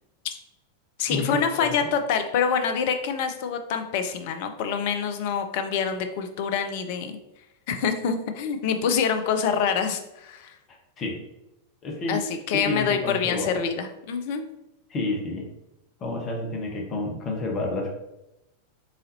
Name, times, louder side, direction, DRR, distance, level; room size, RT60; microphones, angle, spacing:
voice 1, 1.0-7.2 7.7-10.5 12.1-14.5, left 6 dB, 50° left, 7 dB, 0.5 m, -26 dB
voice 2, 11.8-12.2 12.5-13.5 14.9-15.4 16.0-18.0, left 2 dB, 30° left, 1 dB, 0.9 m, -29 dB
4.0 x 3.8 x 2.7 m, 0.92 s
figure-of-eight pair, 90°, 0 cm